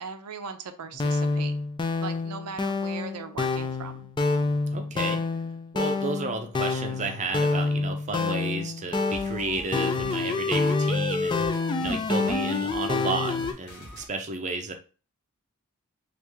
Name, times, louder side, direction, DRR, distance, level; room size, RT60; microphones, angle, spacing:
voice 1, 0.0-1.5 2.0-4.1, right 5 dB, 85° right, 8 dB, 0.5 m, -38 dB
sound 1, 0.9-13.5, left 3 dB, 20° left, 0.3 m, -27 dB
voice 2, 4.7-5.2 5.7-11.4 11.8-14.7, right 3 dB, 35° right, 5 dB, 0.6 m, -32 dB
sound 2, 9.1-14.1, equal, 50° left, 1.0 m, -45 dB
3.1 x 2.5 x 3.4 m, 0.35 s
head